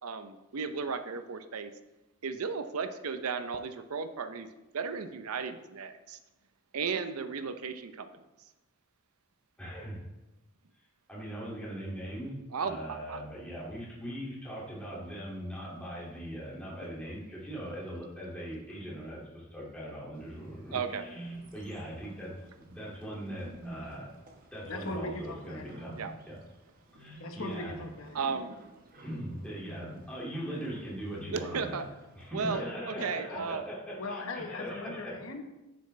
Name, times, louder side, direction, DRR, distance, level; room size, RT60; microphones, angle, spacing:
voice 1, 0.0-1.7 2.2-4.5 4.7-6.2 6.7-8.1 12.5-13.2 20.7-21.0 26.0-26.1 28.1-28.6 31.3-31.9 32.3-33.7, right 5 dB, 80° right, 9 dB, 0.6 m, -35 dB
voice 2, 9.6-10.0 11.1-12.3 12.6-22.3 22.6-24.1 24.5-25.9 26.2-26.4 27.0-27.7 29.0-31.8 32.1-35.2, equal, 5° left, -6 dB, 2.2 m, -40 dB
Bird, 20.1-32.3, right 1 dB, 40° right, 1.1 m, -49 dB
voice 3, 24.6-25.9 27.2-28.3 32.4-32.7 33.0-33.5 34.0-35.4, left 2 dB, 65° left, 4 dB, 1.1 m, -40 dB
9.6 x 6.9 x 3.2 m, 1.0 s
head